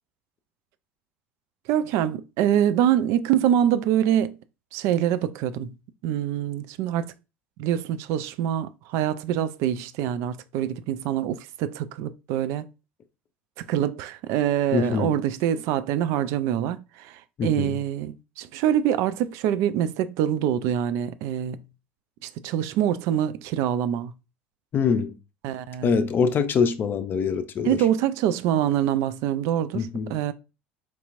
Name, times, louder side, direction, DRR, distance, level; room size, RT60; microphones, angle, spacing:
voice 1, 1.7-4.4 4.7-5.7 6.0-7.1 7.6-12.6 13.6-21.6 22.2-24.1 25.4-26.0 27.6-30.3, right 10 dB, 55° right, 0.3 m, -25 dB
voice 2, 14.7-15.2 17.4-17.8 24.7-25.1 25.8-27.8 29.7-30.2, left 6 dB, 35° left, 0.5 m, -24 dB
4.6 x 2.8 x 2.5 m
figure-of-eight pair, 65°, 6 cm